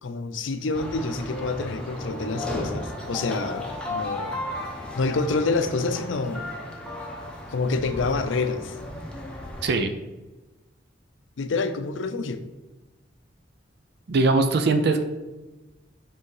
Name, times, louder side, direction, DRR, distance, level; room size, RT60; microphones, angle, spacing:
voice 1, 0.0-4.4 4.9-6.4 7.5-8.8 11.4-12.4, left 3 dB, 80° left, 10 dB, 0.5 m, -27 dB
sound 1, 0.7-9.8, left 1 dB, 5° left, 0.9 m, -35 dB
voice 2, 14.1-15.0, right 3 dB, 60° right, 7 dB, 0.5 m, -21 dB
5.3 x 3.5 x 5.5 m, 1.1 s
head